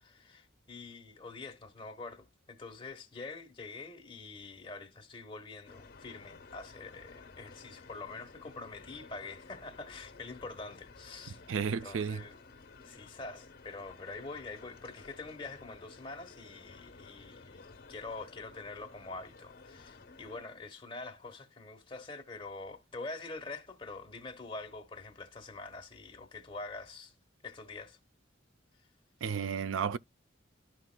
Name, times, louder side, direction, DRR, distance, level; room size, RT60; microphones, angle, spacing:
voice 1, 0.0-11.4 11.7-12.4 12.8-27.1 27.4-28.0, left 3 dB, 25° left, 1.2 m, -45 dB
sound 1, 5.6-20.4, left 4 dB, 50° left, 1.0 m, -54 dB
voice 2, 11.5-12.2 29.2-30.0, right 6 dB, 90° right, 0.4 m, -32 dB
13.0 x 4.4 x 2.2 m
head